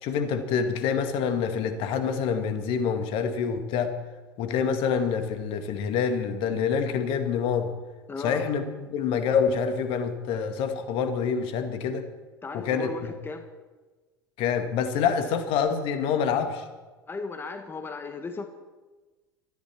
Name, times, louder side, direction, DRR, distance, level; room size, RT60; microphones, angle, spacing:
voice 1, 0.0-3.9 4.4-7.7 8.2-12.0 12.5-13.1 14.4-16.7, left 6 dB, 50° left, 8 dB, 2.1 m, -26 dB
voice 2, 8.1-8.4 12.4-13.4 17.1-18.5, left 4 dB, 20° left, 6 dB, 1.5 m, -36 dB
22.5 x 14.0 x 4.5 m, 1.3 s
figure-of-eight pair, 75°, 12 cm